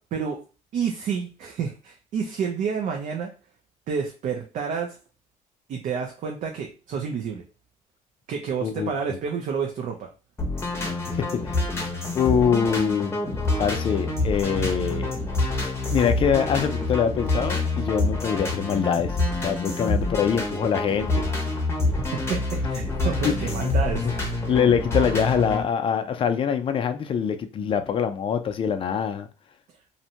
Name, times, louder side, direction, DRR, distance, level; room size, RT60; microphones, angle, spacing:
voice 1, 0.7-3.3 3.9-5.0 5.7-7.4 8.3-10.1 22.1-22.4 22.7-24.4, right 6 dB, 60° right, 2 dB, 0.5 m, -29 dB
voice 2, 8.6-8.9 10.8-11.0 11.5-11.6 12.1-13.1 13.6-15.1 15.9-19.1 19.4-21.3 23.2-23.5 24.0-24.1 24.5-29.3, left 7 dB, 40° left, 8 dB, 0.4 m, -24 dB
sound 1, 10.4-25.6, left 2 dB, 15° left, 0.8 m, -27 dB
2.6 x 2.1 x 2.8 m, 0.34 s
cardioid pair, 120°, 14 cm